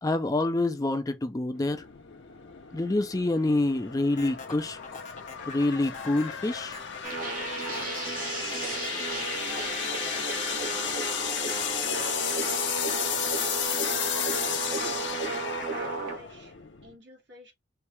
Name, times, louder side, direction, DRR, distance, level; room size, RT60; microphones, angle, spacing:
voice 1, 0.0-1.8 2.7-4.8 5.5-6.8, left 2 dB, 20° left, 0.4 m, -27 dB
sound 1, 1.5-17.0, left 9 dB, 65° left, 0.7 m, -34 dB
sound 2, 4.2-12.5, left 4 dB, 40° left, 0.9 m, -45 dB
sound 3, 7.0-16.2, right 4 dB, 45° right, 1.5 m, -33 dB
voice 2, 14.7-15.1 15.7-16.6 16.8-17.5, equal, 65° right, 2.3 m, -48 dB
4.5 x 2.7 x 3.4 m
head